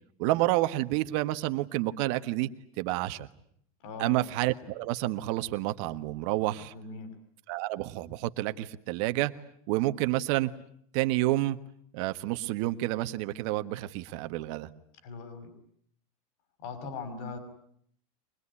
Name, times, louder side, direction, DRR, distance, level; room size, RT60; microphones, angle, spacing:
voice 1, 0.2-2.5 2.8-3.3 4.0-6.7 7.5-9.3 9.7-10.5 10.9-11.6 11.9-14.7, right 17 dB, 55° right, 10 dB, 1.5 m, -29 dB
voice 2, 3.8-4.2 6.7-7.1 15.0-15.5 16.6-17.4, left 4 dB, 60° left, 9 dB, 6.0 m, -40 dB
24.0 x 21.0 x 9.9 m, 0.66 s
supercardioid pair, 140°, 18 cm